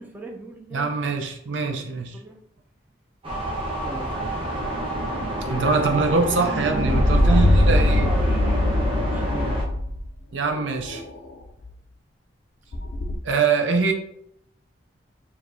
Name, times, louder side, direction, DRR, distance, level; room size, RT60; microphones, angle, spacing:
voice 1, 0.0-1.1 1.5-1.9 2.1-2.3 3.8-4.1 6.9-7.5 7.7-9.6, right 1 dB, 10° right, 2 dB, 0.4 m, -38 dB
voice 2, 0.7-2.2 5.5-8.1 10.3-11.0 13.2-13.9, right 4 dB, 90° right, 4 dB, 0.6 m, -23 dB
sound 1, 3.2-9.6, right 1 dB, 30° right, 0.9 m, -28 dB
sound 2, 6.8-10.1 10.5-11.3 11.6-11.7 12.7-13.2, left 1 dB, 60° left, 0.5 m, -21 dB
4.6 x 2.6 x 2.6 m, 0.73 s
head